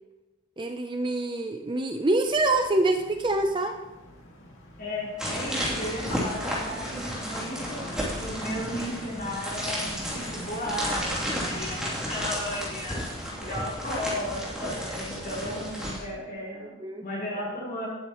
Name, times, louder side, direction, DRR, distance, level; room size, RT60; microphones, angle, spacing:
voice 1, 0.6-3.8 16.8-17.0, right 2 dB, 20° right, 5 dB, 0.5 m, -25 dB
sound 1, 2.2-12.4, equal, 65° left, 2.1 m, -45 dB
voice 2, 4.8-16.7 17.0-17.9, left 1 dB, 45° left, -4 dB, 4.6 m, -35 dB
sound 2, 5.2-16.0, equal, 5° right, 2.9 m, -33 dB
19.0 x 8.8 x 3.1 m, 1.1 s
head